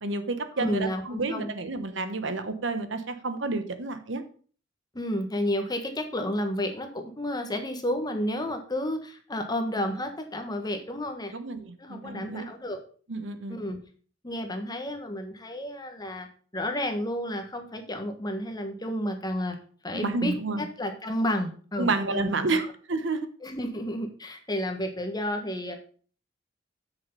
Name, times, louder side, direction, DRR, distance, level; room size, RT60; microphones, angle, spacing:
voice 1, 0.0-4.2 11.3-12.5 13.1-13.6 19.9-20.6 21.8-22.6 22.9-23.3, right 3 dB, 65° right, 10 dB, 1.1 m, -30 dB
voice 2, 0.5-1.5 4.9-11.3 11.8-12.8 13.5-13.8 14.2-16.3 16.5-19.6 19.8-22.3 23.4-25.8, left 1 dB, 20° left, 5 dB, 1.4 m, -31 dB
8.0 x 6.5 x 5.4 m, 0.42 s
head